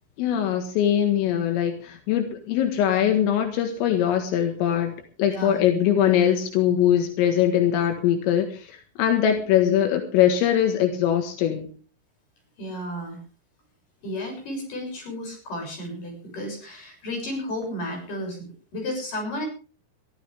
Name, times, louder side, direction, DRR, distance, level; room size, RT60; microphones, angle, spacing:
voice 1, 0.2-11.7, left 10 dB, 85° left, 5 dB, 4.3 m, -22 dB
voice 2, 5.3-5.6 12.6-13.2 14.0-19.5, left 1 dB, 40° left, 1 dB, 8.3 m, -33 dB
22.5 x 14.5 x 3.5 m, 0.37 s
omnidirectional pair, 5.8 m